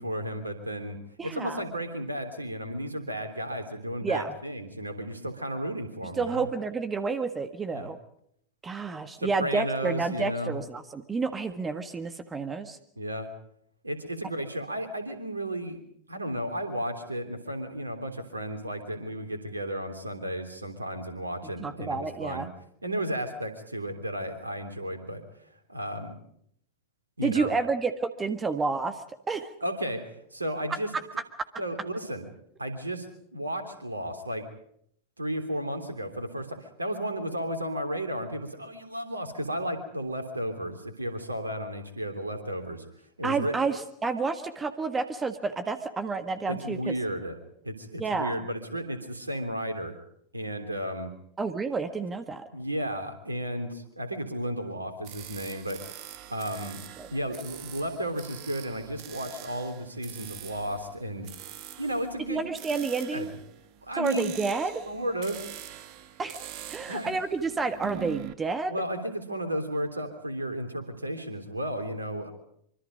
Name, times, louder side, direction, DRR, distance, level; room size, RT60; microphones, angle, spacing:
voice 1, 0.0-6.5 7.7-7.9 9.2-10.6 13.0-13.3 13.8-15.8 16.1-22.5 22.8-25.2 25.7-26.1 27.2-27.5 29.6-30.9 31.6-32.3 32.6-33.1 33.3-34.5 35.2-42.8 43.2-43.6 46.5-47.4 47.6-50.0 50.3-51.1 52.5-55.8 56.3-56.8 57.1-61.3 61.8-62.4 63.1-63.3 63.8-64.4 64.9-65.5 66.9-67.1 68.7-72.3, equal, 80° right, 8 dB, 3.2 m, -33 dB
voice 2, 1.2-1.6 4.0-4.3 6.2-8.0 8.6-12.8 21.6-22.5 27.2-29.0 29.3-29.5 43.2-46.9 48.0-48.4 51.4-52.4 57.0-57.1 62.3-63.3 64.0-64.8 66.2-66.4 66.7-68.7, right 4 dB, 15° right, 10 dB, 1.6 m, -30 dB
sound 1, 55.0-68.3, right 12 dB, 45° right, 1.5 m, -44 dB
25.5 x 24.5 x 5.2 m, 0.70 s
figure-of-eight pair, 90°, 0 cm